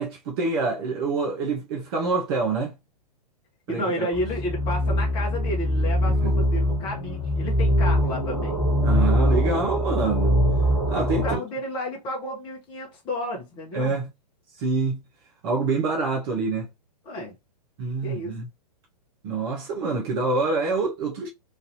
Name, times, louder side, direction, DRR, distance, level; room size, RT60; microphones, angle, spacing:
voice 1, 0.0-2.7 3.7-4.1 6.1-6.3 8.8-10.4 10.9-11.4 13.7-14.1 14.6-15.0 15.4-16.7 17.8-18.5 19.2-21.3, right 3 dB, 35° right, 0.8 m, -26 dB
voice 2, 3.7-8.6 10.9-13.9 17.0-17.3 18.0-18.3, left 1 dB, 25° left, 1.0 m, -32 dB
sound 1, 4.1-11.4, equal, 5° right, 1.1 m, -22 dB
3.2 x 2.6 x 2.6 m
figure-of-eight pair, 110°, 21 cm